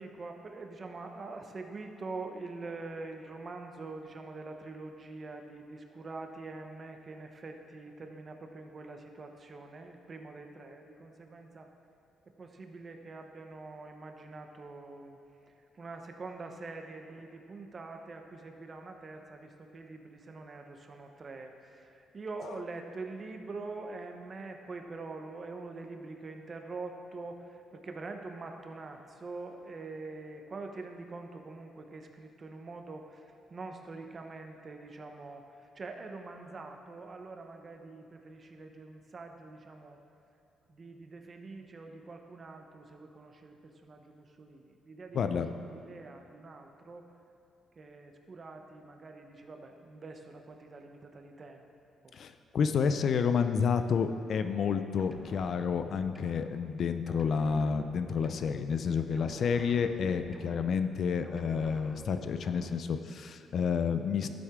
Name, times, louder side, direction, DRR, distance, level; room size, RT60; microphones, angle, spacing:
voice 1, 0.0-11.7 12.3-15.2 15.5-40.0 40.7-47.1 47.8-51.7 52.0-52.2, right 3 dB, 40° right, 4 dB, 0.9 m, -45 dB
voice 2, 45.1-45.5 52.1-64.3, left 6 dB, 60° left, 9 dB, 0.5 m, -30 dB
sound 1, 55.0-56.8 57.1-58.9 59.1-61.0 61.2-62.9, equal, 5° left, 0.7 m, -50 dB
12.0 x 7.7 x 3.7 m, 2.8 s
cardioid pair, 90°, 0 cm